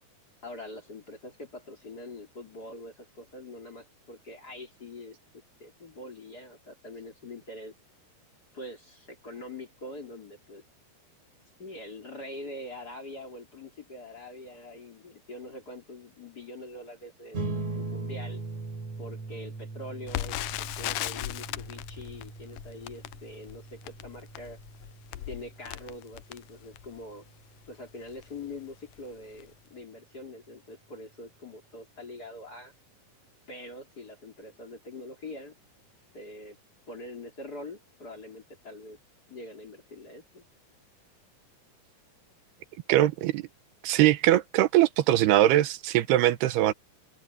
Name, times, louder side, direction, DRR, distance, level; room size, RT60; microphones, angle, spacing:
voice 1, 0.4-5.2 5.6-7.7 8.5-10.6 11.6-18.4 19.0-24.6 25.3-27.3 27.7-32.7 33.5-35.6 36.1-36.6 36.9-39.0 39.3-40.4, left 2 dB, 25° left, 3.3 m, -44 dB
sound 1, 17.3-28.1, right 3 dB, 45° right, 4.9 m, -40 dB
Crackle, 20.1-27.0 27.7-27.8 28.1-28.3 28.9-29.1 29.4-29.5, left 15 dB, 90° left, 1.8 m, -37 dB
voice 2, 42.9-43.4 43.8-46.7, right 14 dB, 90° right, 3.0 m, -22 dB
open air
omnidirectional pair, 4.5 m